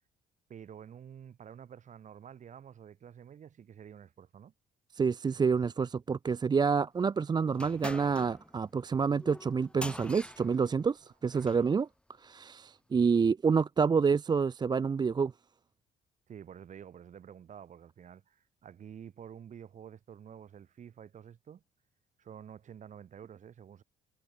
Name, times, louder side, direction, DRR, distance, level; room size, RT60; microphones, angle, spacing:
voice 1, 0.5-4.5 16.3-21.6 22.2-23.8, right 8 dB, 45° right, 4.4 m, -49 dB
voice 2, 4.9-11.9 12.2-15.3, right 5 dB, 25° right, 0.6 m, -28 dB
sound 1, 7.5-11.7, left 1 dB, 5° left, 1.4 m, -45 dB
cardioid pair, 110°, 17 cm